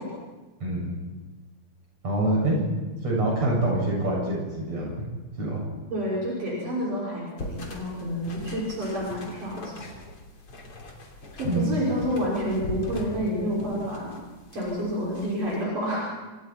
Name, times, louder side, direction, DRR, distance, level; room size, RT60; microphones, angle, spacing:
voice 1, 0.6-1.0 2.0-4.9 5.4-5.6 11.4-11.8, right 1 dB, 50° right, -3 dB, 8.7 m, -26 dB
voice 2, 5.9-9.7 11.4-14.2 14.5-16.1, equal, 75° right, -6 dB, 7.7 m, -29 dB
sound 1, 7.4-15.6, left 2 dB, 45° left, 3.9 m, -41 dB
27.0 x 26.0 x 4.6 m, 1.2 s
omnidirectional pair, 3.7 m